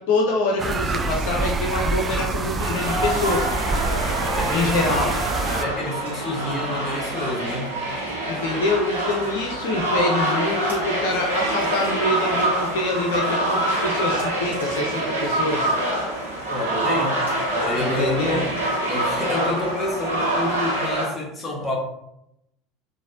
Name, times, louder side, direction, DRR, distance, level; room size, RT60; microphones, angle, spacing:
voice 1, 0.0-3.5 4.5-5.1 8.3-15.7 17.8-18.4, left 2 dB, 60° left, 0 dB, 0.5 m, -25 dB
sound 1, 0.6-5.7, right 3 dB, 25° right, 0.3 m, -26 dB
sound 2, 2.6-21.1, right 1 dB, 80° right, 1.2 m, -25 dB
voice 2, 4.2-5.1 5.5-7.8 16.5-18.6 18.9-21.8, left 1 dB, 20° left, -2 dB, 1.0 m, -29 dB
3.9 x 2.5 x 2.5 m, 0.84 s
figure-of-eight pair, 70°, 0 cm